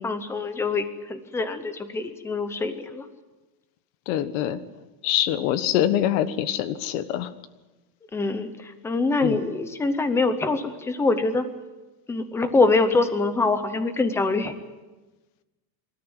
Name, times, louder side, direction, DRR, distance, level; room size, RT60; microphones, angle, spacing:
voice 1, 0.0-3.1 8.1-11.5 12.1-14.5, left 3 dB, 5° left, 10 dB, 0.6 m, -24 dB
voice 2, 4.1-4.6 5.0-7.3 9.2-9.4, left 11 dB, 50° left, 13 dB, 1.4 m, -24 dB
26.0 x 13.5 x 9.5 m, 1.2 s
supercardioid pair, 180°, 50 cm